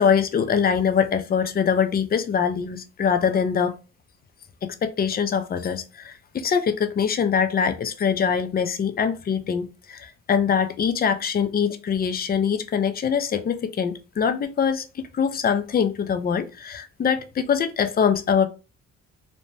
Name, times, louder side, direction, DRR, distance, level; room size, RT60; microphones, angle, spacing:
voice 1, 0.0-3.8 4.6-18.5, left 7 dB, 30° left, 0.4 m, -23 dB
2.7 x 2.1 x 3.1 m
cardioid pair, 90°, 30 cm